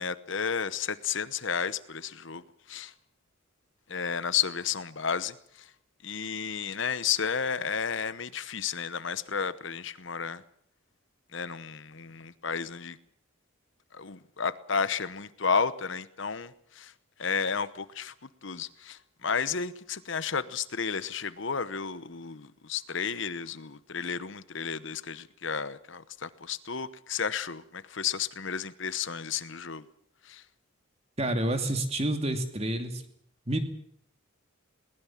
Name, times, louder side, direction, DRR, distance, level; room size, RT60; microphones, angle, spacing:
voice 1, 0.0-2.4 2.7-2.9 3.9-5.7 6.0-10.4 11.3-13.0 13.9-16.9 17.2-18.1 18.4-29.9 30.2-30.4, left 6 dB, 60° left, 15 dB, 1.0 m, -32 dB
voice 2, 31.2-33.0 33.5-33.6, right 1 dB, 30° right, 7 dB, 2.7 m, -28 dB
21.0 x 19.5 x 7.4 m, 0.66 s
head